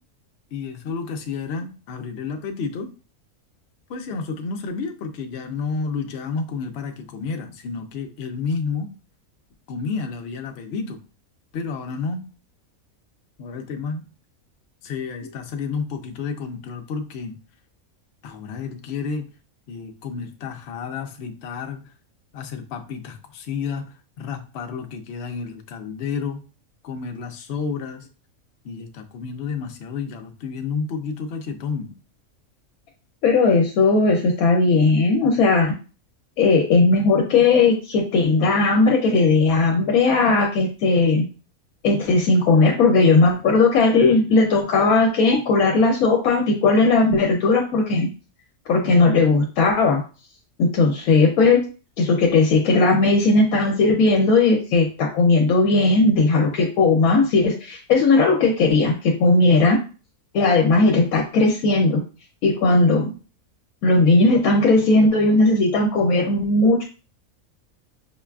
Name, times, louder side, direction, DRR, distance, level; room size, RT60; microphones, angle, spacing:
voice 1, 0.5-2.9 3.9-8.9 9.7-11.0 11.5-12.3 13.4-14.1 14.8-17.4 18.2-19.3 19.7-21.8 22.3-23.9 24.2-26.4 26.8-28.1 28.6-31.9 34.9-35.0, left 5 dB, 60° left, 4 dB, 0.7 m, -30 dB
voice 2, 33.2-35.7 36.4-41.3 41.8-48.1 48.7-50.0 50.6-51.6 52.0-59.8 60.3-62.0 62.4-63.1 63.8-66.9, left 3 dB, 80° left, 2 dB, 1.0 m, -17 dB
5.5 x 2.3 x 2.2 m, 0.36 s
omnidirectional pair, 1.5 m